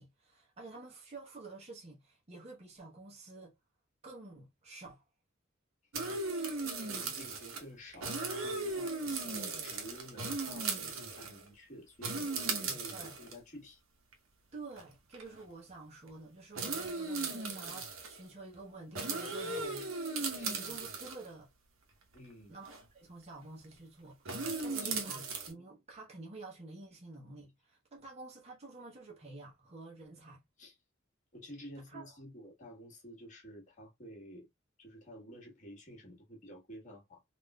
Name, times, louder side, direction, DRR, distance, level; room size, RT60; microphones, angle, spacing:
voice 1, 0.0-3.6 4.0-5.0 12.9-13.2 14.5-21.5 22.5-24.2 24.6-25.2 25.5-30.4 31.9-32.2, right 3 dB, 30° right, 0.8 m, -49 dB
sound 1, 5.9-7.6 7.9-11.4 12.0-13.3 14.1-14.2 14.8-14.9 15.1-15.4 16.5-18.2 18.9-21.3 22.6-22.8 24.2-25.5, right 3 dB, 70° right, 0.9 m, -37 dB
voice 2, 6.9-13.8 20.3-20.5 22.1-22.6 24.6-25.3 30.6-30.7 31.3-34.5 34.8-37.2, equal, 35° left, 1.2 m, -51 dB
3.4 x 2.5 x 2.2 m
head